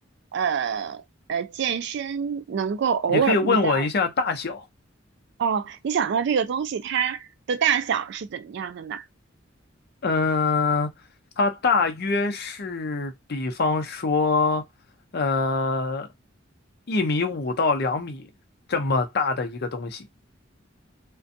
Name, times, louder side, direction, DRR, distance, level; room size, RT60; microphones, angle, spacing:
voice 1, 0.3-1.0 1.3-3.9 5.4-9.0, right 7 dB, 60° right, 0.4 m, -26 dB
voice 2, 3.1-4.6 10.0-10.9 11.4-14.6 15.1-16.1 16.9-18.3 18.7-20.1, left 3 dB, 55° left, 0.6 m, -24 dB
2.5 x 2.2 x 2.5 m
head